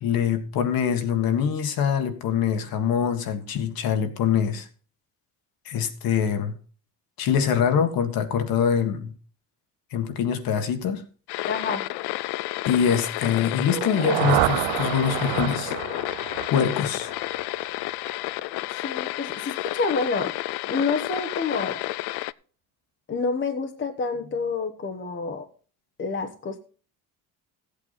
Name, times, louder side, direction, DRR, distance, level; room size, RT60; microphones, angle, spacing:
voice 1, 0.0-4.7 5.7-6.5 7.2-9.1 9.9-11.0 12.7-15.8 16.5-17.1, left 7 dB, 65° left, 1.7 m, -24 dB
sound 1, 11.3-22.3, left 18 dB, 80° left, 0.5 m, -31 dB
voice 2, 11.5-11.9 18.8-20.3 20.6-21.8 23.1-25.4 26.0-26.6, left 4 dB, 30° left, 1.1 m, -28 dB
sound 2, 13.6-17.6, right 20 dB, 90° right, 0.5 m, -28 dB
15.0 x 8.5 x 4.1 m
cardioid pair, 135°, 39 cm